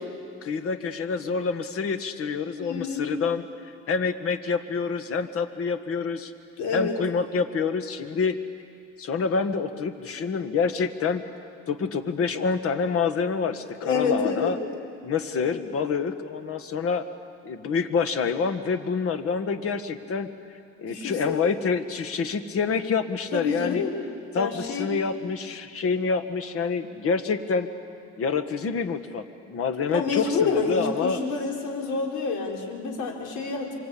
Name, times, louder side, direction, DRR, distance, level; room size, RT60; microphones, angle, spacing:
voice 1, 0.4-6.3 6.7-8.4 9.0-11.3 11.7-14.6 15.0-17.1 17.4-20.3 20.8-23.8 24.3-27.7 28.2-31.2, left 5 dB, 50° left, 9 dB, 1.7 m, -27 dB
voice 2, 2.6-3.1 6.6-7.0 13.8-14.5 15.4-15.7 20.9-21.4 23.3-24.0 24.3-24.9 29.9-33.8, left 5 dB, 75° left, 0 dB, 4.8 m, -28 dB
26.0 x 25.5 x 8.6 m, 2.4 s
cardioid pair, 120°, 30 cm